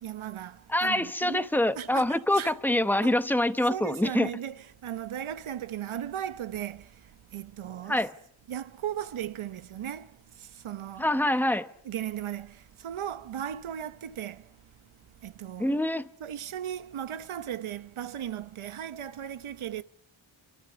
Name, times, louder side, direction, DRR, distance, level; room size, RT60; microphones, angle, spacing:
voice 1, 0.0-1.5 1.8-2.5 3.0-3.2 3.7-6.9 7.3-8.0 8.5-11.1 11.8-14.5 15.2-15.8 16.2-19.8, right 10 dB, 75° right, 1.0 m, -37 dB
voice 2, 0.7-4.3 7.9-8.1 11.0-11.7 15.6-16.1, left 1 dB, 5° left, 1.0 m, -25 dB
27.5 x 13.5 x 9.9 m
wide cardioid pair, 110°, 49 cm